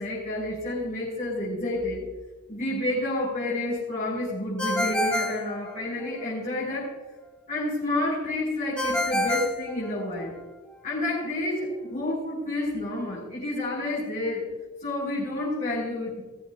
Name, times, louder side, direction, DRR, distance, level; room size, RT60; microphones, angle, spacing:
voice 1, 0.0-2.0 2.5-7.0 7.5-10.3 10.8-14.4 14.8-16.2, left 1 dB, 35° left, -7 dB, 5.0 m, -29 dB
Ringtone, 4.6-6.3 8.8-10.4, left 1 dB, 5° left, 1.5 m, -28 dB
20.0 x 14.0 x 2.4 m, 1.2 s
head